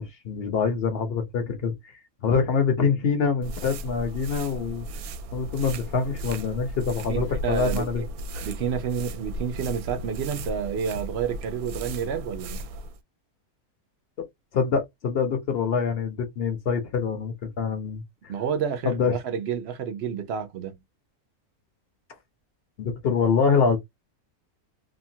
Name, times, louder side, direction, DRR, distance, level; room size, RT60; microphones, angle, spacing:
voice 1, 0.0-1.9 2.2-4.9 5.3-8.0 14.5-18.0 18.8-19.2 22.8-23.8, left 5 dB, 50° left, 0.9 m, -25 dB
sound 1, 3.4-13.0, right 1 dB, 75° right, 1.0 m, -35 dB
voice 2, 7.1-8.1 8.4-12.6 18.3-20.8, right 7 dB, 60° right, 0.7 m, -29 dB
2.8 x 2.3 x 2.7 m
omnidirectional pair, 1.6 m